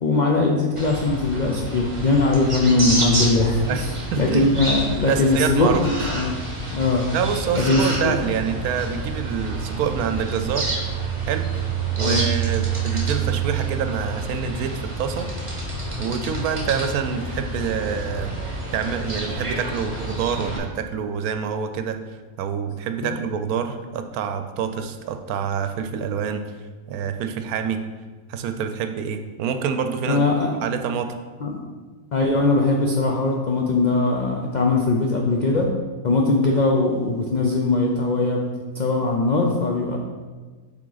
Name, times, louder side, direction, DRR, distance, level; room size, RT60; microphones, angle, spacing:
voice 1, 0.0-3.9 4.2-6.3 6.7-7.1 7.6-8.1 12.0-12.2 23.0-23.1 30.1-30.5 31.4-31.6 32.1-35.7 36.0-38.5 38.7-40.0, left 3 dB, 70° left, 0 dB, 0.4 m, -20 dB
sound 1, 0.8-20.6, right 3 dB, 25° right, 1.1 m, -28 dB
voice 2, 4.1-4.5 5.0-5.8 7.1-10.7 11.3-11.5 12.0-15.3 16.0-18.3 18.7-22.0 22.4-26.4 26.9-27.8 28.3-30.2 30.6-31.1, right 7 dB, 80° right, 8 dB, 1.0 m, -26 dB
7.4 x 3.7 x 4.0 m, 1.4 s
omnidirectional pair, 1.5 m